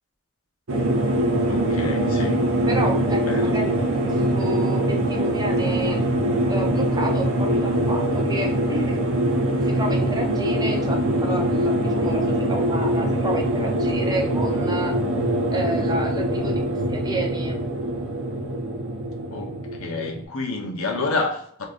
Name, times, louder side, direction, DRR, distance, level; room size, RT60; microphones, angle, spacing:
sound 1, 0.7-20.2, right 1 dB, 65° right, 0.7 m, -23 dB
voice 1, 1.5-2.4 3.2-3.6 19.3-21.6, left 3 dB, 80° left, 0.9 m, -29 dB
voice 2, 2.7-6.0 6.5-9.1 9.6-14.9 15.5-17.6, right 1 dB, 20° right, 0.6 m, -30 dB
3.8 x 3.2 x 2.5 m
head